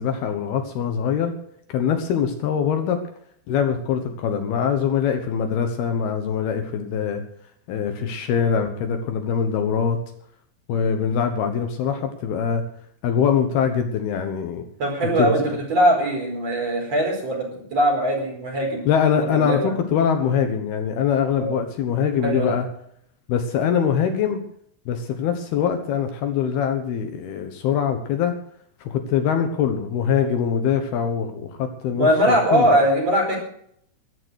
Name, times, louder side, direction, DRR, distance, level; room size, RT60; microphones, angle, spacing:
voice 1, 0.0-1.3 1.7-3.0 3.5-7.2 7.7-10.0 10.7-12.6 13.0-14.6 15.2-15.6 18.9-22.7 23.3-24.4 24.9-28.4 28.8-32.7, left 7 dB, 70° left, 6 dB, 3.0 m, -23 dB
voice 2, 14.8-18.9 19.2-19.7 21.4-21.6 22.2-22.6 32.0-33.4, right 1 dB, 35° right, 0 dB, 5.7 m, -21 dB
14.0 x 12.0 x 6.4 m, 0.67 s
omnidirectional pair, 5.0 m